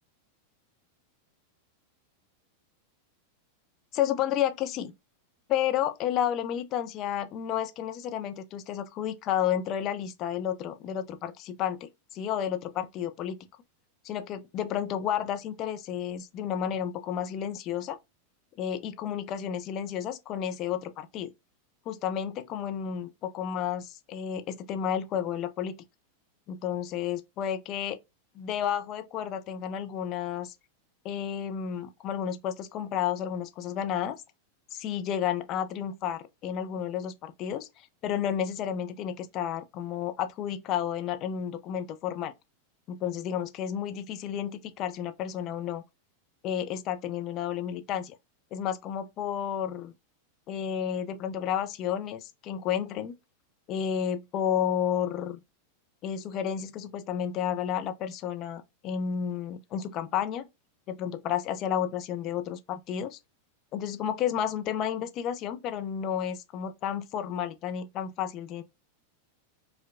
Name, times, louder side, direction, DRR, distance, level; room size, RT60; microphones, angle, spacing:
voice 1, 3.9-4.9 5.5-13.4 14.0-18.0 18.6-21.3 21.9-25.8 26.5-28.0 28.4-30.5 31.0-34.2 34.7-42.3 42.9-45.8 46.4-48.2 48.5-49.9 50.5-53.1 53.7-55.4 56.0-60.5 60.9-63.2 63.7-68.6, left 9 dB, 35° left, 0.4 m, -31 dB
4.4 x 2.2 x 2.5 m
figure-of-eight pair, 90°, 0 cm